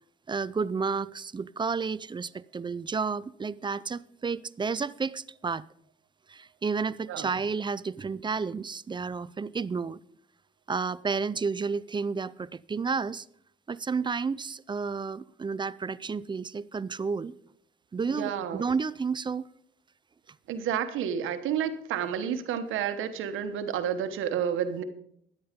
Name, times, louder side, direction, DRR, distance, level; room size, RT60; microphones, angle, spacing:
voice 1, 0.3-5.6 6.3-10.0 10.7-13.3 13.7-17.3 17.9-19.5, right 5 dB, 25° right, 0.4 m, -31 dB
voice 2, 18.1-18.6 20.5-24.8, right 8 dB, 85° right, 1.2 m, -30 dB
13.5 x 9.6 x 5.2 m
cardioid pair, 90°, 20 cm